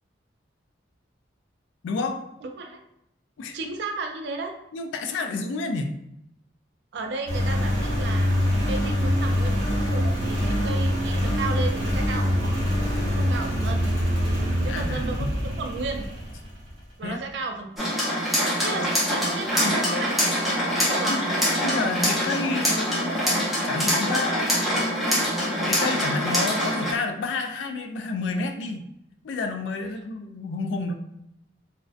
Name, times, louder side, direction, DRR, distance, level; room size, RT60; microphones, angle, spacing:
voice 1, 1.8-2.2 3.4-3.6 4.7-5.9 14.7-15.3 17.0-17.2 19.6-20.1 21.0-21.2 21.6-25.3 25.7-28.9 29.2-30.9, left 3 dB, 75° left, 7 dB, 0.3 m, -30 dB
voice 2, 2.4-2.8 3.5-4.5 6.9-8.3 8.7-12.6 13.1-13.9 14.6-16.1 17.0-17.9 18.6-21.2 29.8-30.0, right 3 dB, 65° right, 4 dB, 0.3 m, -34 dB
Engine, 7.3-16.7, equal, 80° right, 0.9 m, -24 dB
sound 1, 17.8-26.9, equal, ahead, 0.5 m, -24 dB
2.5 x 2.1 x 2.3 m, 0.80 s
head